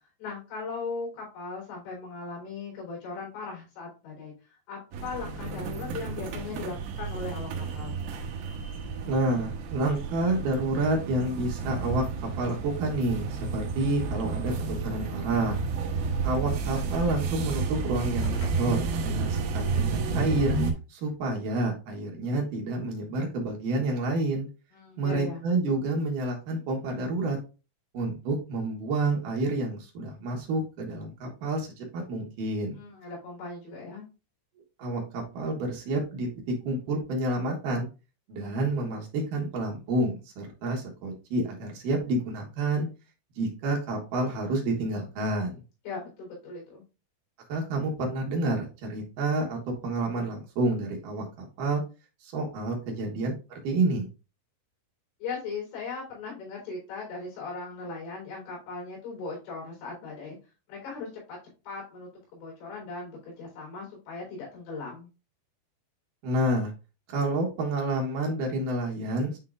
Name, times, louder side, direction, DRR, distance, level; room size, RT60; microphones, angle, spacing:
voice 1, 0.2-7.5 7.7-8.0 24.7-25.4 32.7-34.1 45.8-46.8 55.2-60.4 60.7-61.4 61.7-65.1, left 4 dB, 85° left, -2 dB, 6.5 m, -38 dB
sound 1, 4.9-20.7, right 4 dB, 85° right, 2.1 m, -31 dB
voice 2, 9.1-12.1 12.4-15.6 16.2-20.6 20.9-24.5 25.0-27.4 27.9-32.8 34.8-37.9 38.3-42.9 43.4-45.6 47.5-51.8 52.2-53.3 53.6-54.1 66.2-66.7 67.1-69.4, right 2 dB, 65° right, 0 dB, 2.2 m, -29 dB
sound 2, 14.2-15.3 15.6-20.2, left 3 dB, 70° left, 2.1 m, -46 dB
10.5 x 3.7 x 2.5 m, 0.31 s
omnidirectional pair, 5.9 m